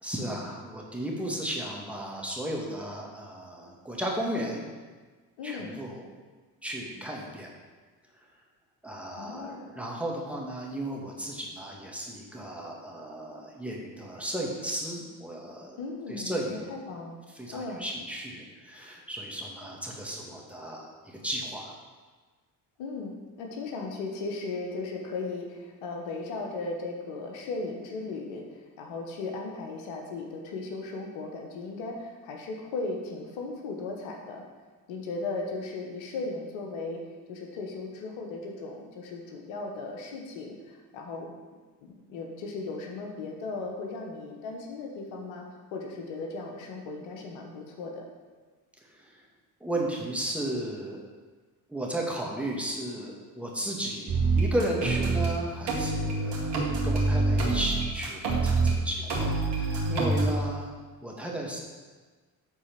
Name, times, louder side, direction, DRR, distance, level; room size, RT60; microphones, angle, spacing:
voice 1, 0.0-4.7 5.4-6.0 6.6-7.5 8.2-8.3 8.8-15.8 16.1-16.8 17.3-21.8 48.8-49.2 49.6-51.0 51.7-60.7 61.0-61.6, right 1 dB, 5° right, -2 dB, 2.0 m, -34 dB
voice 2, 5.4-5.7 9.2-9.7 15.8-17.2 17.5-17.8 22.8-34.4 34.9-37.0 37.3-41.3 41.8-48.0, left 3 dB, 75° left, 1 dB, 1.3 m, -37 dB
sound 1, 54.1-55.3 55.7-58.7 59.1-60.3, right 3 dB, 60° right, 2.4 m, -26 dB
8.5 x 4.2 x 5.9 m, 1.4 s
hypercardioid pair, 60°, 48 cm